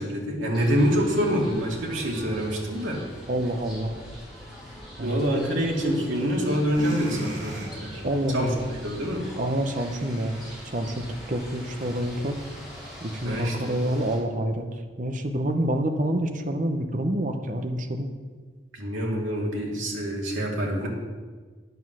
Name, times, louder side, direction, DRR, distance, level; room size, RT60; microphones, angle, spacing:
voice 1, 0.0-3.0 5.0-8.0 8.3-8.5 8.8-9.3 13.2-13.8 18.7-20.9, equal, 90° right, -2 dB, 2.1 m, -26 dB
sound 1, 0.5-14.2, equal, ahead, 3.4 m, -42 dB
voice 2, 3.3-4.0 5.0-5.2 8.0-8.7 9.4-10.4 10.7-12.4 13.0-14.7 15.0-18.1, right 1 dB, 40° right, 6 dB, 0.8 m, -27 dB
sound 2, 5.7-6.3 6.6-12.1, right 1 dB, 60° right, 2.8 m, -40 dB
9.4 x 6.2 x 6.2 m, 1.5 s
head